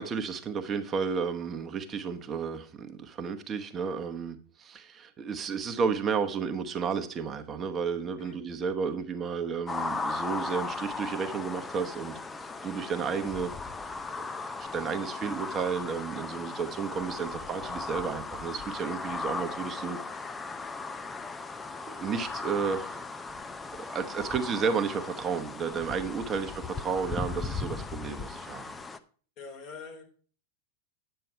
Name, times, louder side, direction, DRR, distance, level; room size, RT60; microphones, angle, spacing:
voice 1, 0.0-12.1 12.6-13.5 14.2-20.0 21.8-23.0 23.8-28.7, right 6 dB, 25° right, 1.0 m, -32 dB
sound 1, 9.7-29.0, left 4 dB, 15° left, 0.6 m, -37 dB
voice 2, 29.4-30.0, left 4 dB, 45° left, 2.9 m, -44 dB
9.3 x 6.8 x 4.5 m
hypercardioid pair, 100°, 0 cm